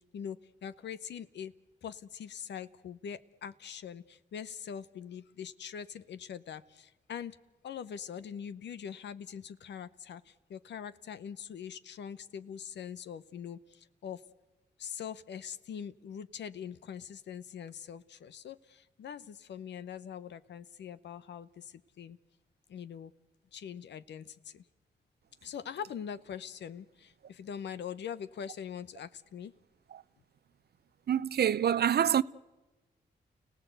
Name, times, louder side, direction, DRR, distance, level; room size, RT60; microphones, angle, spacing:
voice 1, 0.1-1.5 1.8-7.4 7.6-14.2 14.8-22.2 22.7-23.1 23.5-24.6 25.4-29.5, left 8 dB, 75° left, 0.9 m, -43 dB
voice 2, 31.1-32.2, right 9 dB, 60° right, 0.7 m, -26 dB
30.0 x 17.0 x 8.1 m
supercardioid pair, 55°, 18 cm